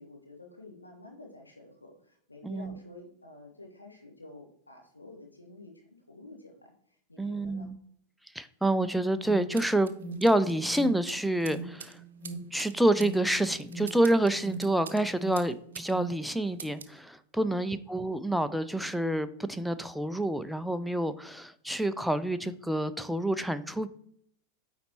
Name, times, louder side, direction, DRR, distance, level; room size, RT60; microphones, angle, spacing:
voice 1, 0.0-7.7 17.4-17.8, left 2 dB, 80° left, 2 dB, 1.2 m, -50 dB
voice 2, 2.4-2.8 7.2-7.8 8.3-9.9 10.2-12.0 12.5-23.9, right 1 dB, ahead, 11 dB, 0.4 m, -28 dB
Alarm, 9.2-16.2, right 2 dB, 25° left, 2.2 m, -43 dB
sound 1, 9.6-15.9 16.2-17.0, right 7 dB, 65° right, 0.5 m, -47 dB
9.3 x 4.0 x 2.9 m, 0.66 s
figure-of-eight pair, 90°, 0 cm